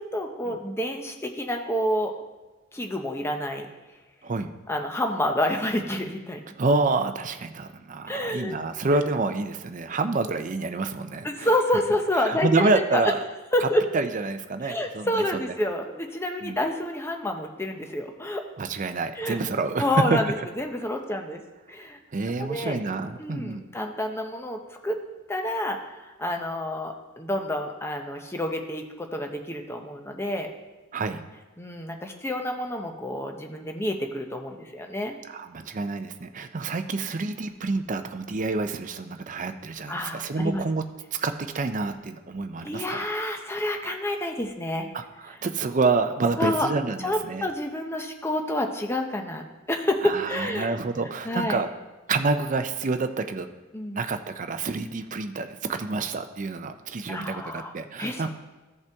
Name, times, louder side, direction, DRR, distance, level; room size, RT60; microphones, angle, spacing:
voice 1, 0.0-2.1 2.7-3.7 4.7-6.4 8.1-8.6 11.2-13.1 13.5-13.8 14.6-18.4 19.2-19.4 19.8-21.4 21.7-22.0 22.4-22.8 23.2-25.0 25.3-30.5 31.6-35.1 39.9-40.6 42.6-44.9 46.4-46.7 47.0-50.8 51.2-51.6 53.7-54.0 57.1-57.7 58.0-58.3, left 1 dB, 10° left, 4 dB, 0.7 m, -28 dB
voice 2, 6.6-11.5 12.2-13.2 13.6-13.7 13.9-15.2 16.4-16.6 18.6-20.5 22.1-23.6 30.9-31.2 35.3-40.8 41.2-43.1 44.9-47.4 50.0-51.7 52.1-53.5 53.9-58.3, right 3 dB, 40° right, 8 dB, 0.5 m, -28 dB
14.5 x 5.5 x 3.5 m, 1.2 s
head